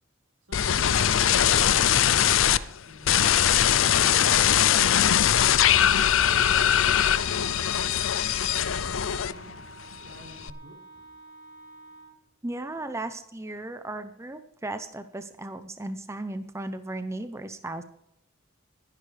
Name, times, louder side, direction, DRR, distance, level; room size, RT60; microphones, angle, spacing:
sound 1, 0.5-2.6 3.0-9.6 9.9-10.5, left 10 dB, 75° left, 0.5 m, -21 dB
voice 1, 0.5-5.3 6.5-9.6 10.0-11.1, equal, 90° right, -1 dB, 4.8 m, -51 dB
Wind instrument woodwind instrument, 5.8-12.2, right 2 dB, 50° left, 2.9 m, -49 dB
voice 2, 12.4-17.8, right 2 dB, 15° right, 9 dB, 0.6 m, -36 dB
21.5 x 11.0 x 3.4 m, 0.76 s
head